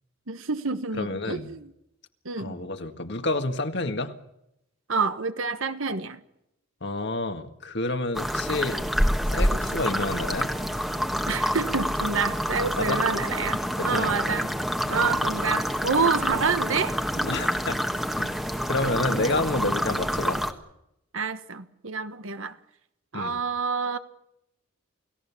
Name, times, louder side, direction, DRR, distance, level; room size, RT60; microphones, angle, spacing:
voice 1, 0.3-1.7 2.2-2.6 4.9-6.2 11.3-14.5 14.9-16.9 21.1-22.6 23.1-24.0, right 4 dB, 70° right, 1.4 m, -28 dB
voice 2, 1.0-1.5 2.4-4.1 6.8-8.8 9.3-10.5 12.8-13.0 13.8-14.1 17.2-17.8 18.2-18.3 18.7-20.4 23.1-23.4, left 2 dB, 55° left, 1.8 m, -29 dB
sound 1, 8.1-20.5, equal, ahead, 1.4 m, -27 dB
29.0 x 17.0 x 7.2 m
head